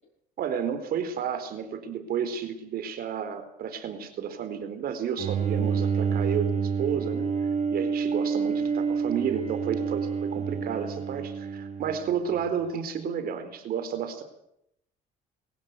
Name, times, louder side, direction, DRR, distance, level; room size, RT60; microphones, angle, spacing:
voice 1, 0.4-7.3 7.7-14.2, right 7 dB, 65° right, 9 dB, 4.3 m, -31 dB
Bowed string instrument, 5.2-12.4, right 6 dB, 45° right, 4.1 m, -28 dB
23.5 x 15.5 x 9.3 m, 0.77 s
cardioid pair, 110°, 17 cm